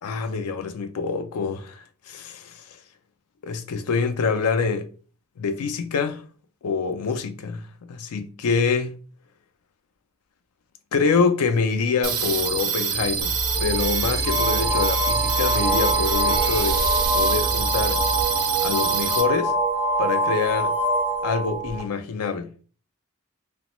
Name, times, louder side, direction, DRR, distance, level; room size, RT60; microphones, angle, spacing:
voice 1, 0.0-2.6 3.4-4.9 5.4-6.2 6.6-9.0 10.9-16.8 17.1-18.0 18.6-19.5 20.0-20.7 21.2-22.5, left 5 dB, 90° left, 0.4 m, -26 dB
sound 1, 12.0-19.2, right 7 dB, 80° right, 0.7 m, -26 dB
sound 2, 13.2-18.2, equal, 15° right, 1.0 m, -29 dB
sound 3, 14.2-21.8, right 1 dB, 10° left, 0.6 m, -24 dB
2.9 x 2.1 x 2.9 m
head